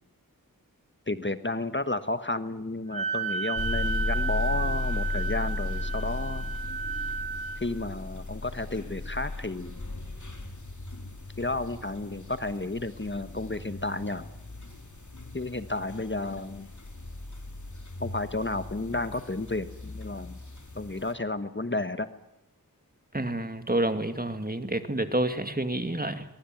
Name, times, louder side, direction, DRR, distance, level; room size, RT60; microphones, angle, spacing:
voice 1, 1.1-6.5 7.6-9.8 11.4-14.3 15.3-16.7 18.0-20.4 20.7-22.1, left 2 dB, 30° left, 11 dB, 1.3 m, -32 dB
Wind instrument woodwind instrument, 2.9-7.6, right 5 dB, 75° right, 2.6 m, -33 dB
sound 1, 3.6-21.1, left 2 dB, 55° left, 4.0 m, -36 dB
voice 2, 23.1-26.2, right 1 dB, 25° right, 9 dB, 2.4 m, -29 dB
23.0 x 22.0 x 9.2 m, 0.92 s
wide cardioid pair, 55°, 35 cm